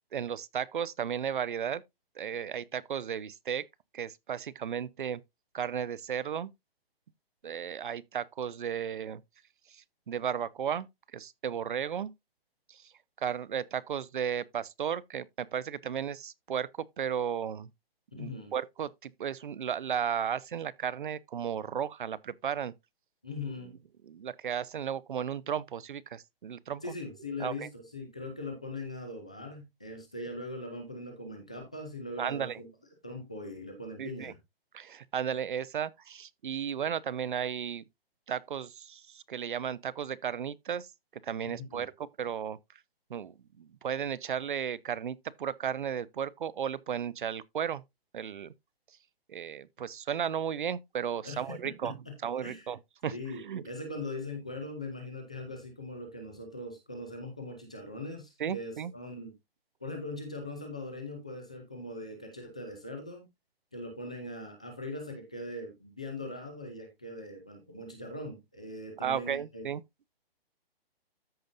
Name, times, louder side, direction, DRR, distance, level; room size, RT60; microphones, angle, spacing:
voice 1, 0.1-1.8 2.2-3.7 3.9-5.2 5.5-6.5 7.4-9.2 9.7-10.9 11.1-12.1 12.7-12.9 13.2-17.7 18.1-22.7 24.0-26.8 27.4-27.7 32.2-32.6 34.0-34.3 34.7-37.8 38.3-40.9 41.2-42.6 43.1-47.8 48.1-48.5 49.3-52.0 52.2-53.6 58.4-58.9 69.0-69.8, right 8 dB, 55° right, 0.7 m, -34 dB
voice 2, 18.2-18.5 23.2-23.7 26.8-32.7 33.0-34.3 41.4-41.8 51.2-52.1 52.4-52.7 53.1-59.3 59.8-63.2 63.7-69.6, left 2 dB, 5° left, 0.4 m, -41 dB
13.5 x 5.2 x 2.6 m
hypercardioid pair, 170°, 30 cm